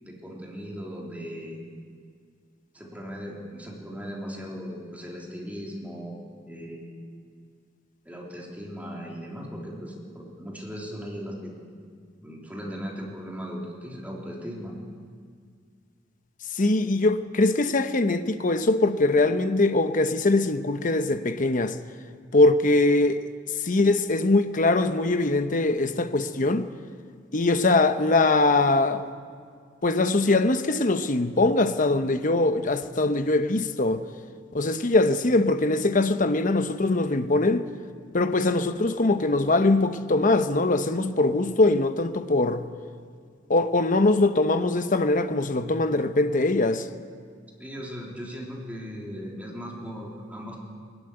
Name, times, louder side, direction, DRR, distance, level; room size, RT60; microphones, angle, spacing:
voice 1, 0.0-1.6 2.7-6.2 6.5-6.9 8.1-11.5 12.2-14.7 47.6-50.6, equal, 10° right, 3.4 m, -38 dB
voice 2, 16.5-21.8 22.3-23.2 23.6-26.7 27.3-29.0 29.8-34.0 34.5-37.6 38.1-42.6 43.5-46.9, left 2 dB, 45° left, 0.9 m, -22 dB
20.0 x 14.5 x 9.8 m
head